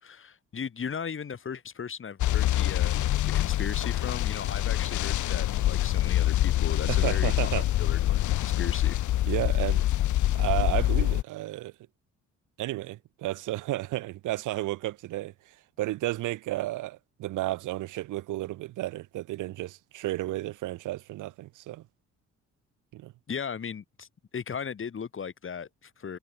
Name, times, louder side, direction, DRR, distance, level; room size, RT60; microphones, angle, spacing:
voice 1, 0.0-2.9 3.2-8.0 8.3-9.0 23.3-24.1 24.3-26.2, left 6 dB, 45° left, 3.5 m, -37 dB
sound 1, 2.2-11.2, left 14 dB, 75° left, 1.3 m, -25 dB
voice 2, 6.9-7.7 9.2-9.9 10.3-11.7 12.6-21.8 22.9-23.1, right 16 dB, 90° right, 2.0 m, -32 dB
cardioid pair, 90°, 30 cm